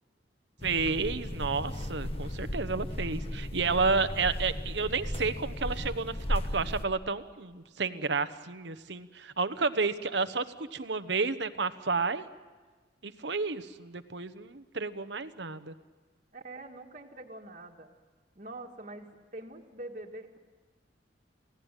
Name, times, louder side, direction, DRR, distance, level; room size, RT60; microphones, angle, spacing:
sound 1, 0.6-6.9, left 1 dB, 30° left, 1.1 m, -35 dB
voice 1, 0.6-12.2 13.0-15.7, right 4 dB, 70° right, 13 dB, 1.1 m, -31 dB
voice 2, 16.3-17.9 18.4-20.4, right 2 dB, 40° right, 1 dB, 1.9 m, -44 dB
29.5 x 17.0 x 9.1 m, 1.4 s
head